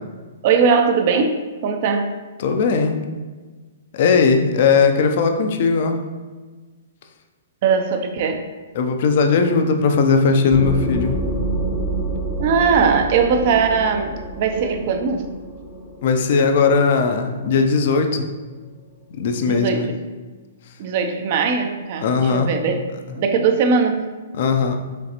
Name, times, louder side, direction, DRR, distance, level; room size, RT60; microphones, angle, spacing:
voice 1, 0.4-2.1 7.6-8.5 12.4-15.3 19.4-20.0 20.8-22.8 23.1-24.1, right 5 dB, 50° right, 5 dB, 0.5 m, -20 dB
voice 2, 2.4-3.0 3.9-6.0 8.8-11.2 16.0-18.3 19.2-19.9 22.0-22.5 24.4-24.8, left 5 dB, 55° left, 6 dB, 0.5 m, -18 dB
sound 1, 10.5-17.9, right 2 dB, 15° left, 0.7 m, -28 dB
5.1 x 3.2 x 2.9 m, 1.4 s
hypercardioid pair, 135°, 0 cm